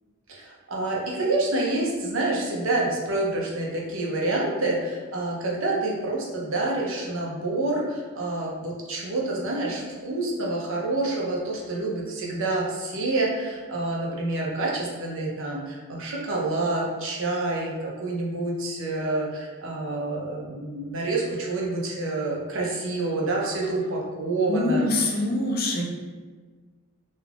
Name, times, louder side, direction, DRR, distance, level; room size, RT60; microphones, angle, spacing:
voice 1, 0.3-25.2, right 2 dB, 60° right, -2 dB, 0.6 m, -28 dB
voice 2, 24.5-25.8, left 2 dB, 45° left, -1 dB, 0.5 m, -24 dB
2.4 x 2.3 x 3.3 m, 1.4 s
head